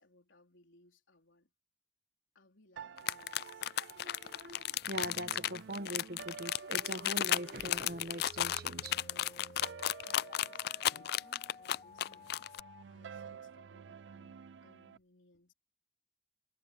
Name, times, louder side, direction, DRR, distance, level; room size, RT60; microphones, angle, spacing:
voice 1, 0.0-1.5 2.3-3.8 9.7-15.5, left 2 dB, 90° left, 4.1 m, -66 dB
sound 1, 2.8-15.0, right 6 dB, 75° right, 0.4 m, -52 dB
sound 2, 3.0-12.6, left 13 dB, 55° left, 0.3 m, -34 dB
voice 2, 3.9-9.0, right 1 dB, 55° right, 1.5 m, -42 dB
sound 3, 6.8-12.8, left 2 dB, 30° left, 0.9 m, -55 dB
head